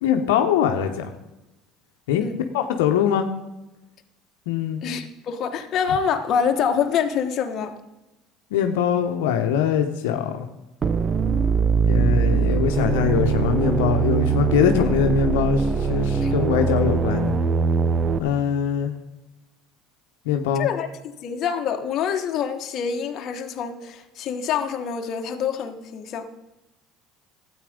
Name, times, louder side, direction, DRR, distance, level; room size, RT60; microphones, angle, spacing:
voice 1, 0.0-1.1 2.1-2.2 2.5-3.3 4.5-4.8 8.5-10.5 11.8-17.4 18.2-18.9 20.2-20.7, left 8 dB, 90° left, 5 dB, 1.0 m, -22 dB
voice 2, 4.8-7.8 16.2-16.3 20.6-20.9 21.2-26.3, left 7 dB, 50° left, 5 dB, 1.4 m, -26 dB
sound 1, 10.8-18.2, right 5 dB, 35° right, 0.8 m, -21 dB
12.5 x 9.2 x 5.2 m, 0.99 s
supercardioid pair, 95°, 0 cm